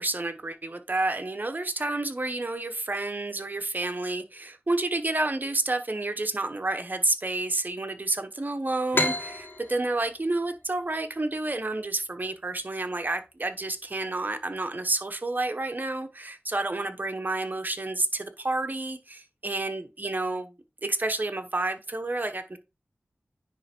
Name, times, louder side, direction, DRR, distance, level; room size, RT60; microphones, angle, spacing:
voice 1, 0.0-20.5 20.8-22.6, right 2 dB, 40° right, 1.2 m, -30 dB
sound 1, 8.9-12.4, left 1 dB, 50° left, 2.0 m, -32 dB
9.8 x 3.3 x 4.5 m
cardioid pair, 40°, 5 cm